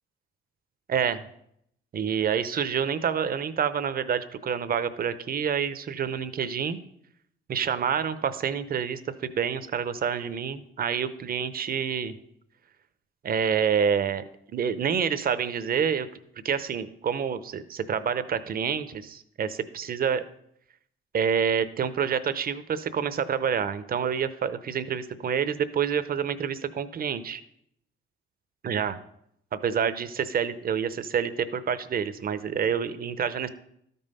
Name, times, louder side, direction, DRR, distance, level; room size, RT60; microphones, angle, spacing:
voice 1, 0.9-1.3 1.9-6.8 7.5-12.1 13.2-14.2 14.5-16.1 16.4-20.2 21.1-27.4 28.6-29.0 29.5-33.5, right 7 dB, 50° right, 13 dB, 0.7 m, -27 dB
12.5 x 5.5 x 5.4 m, 0.74 s
cardioid pair, 90°, 20 cm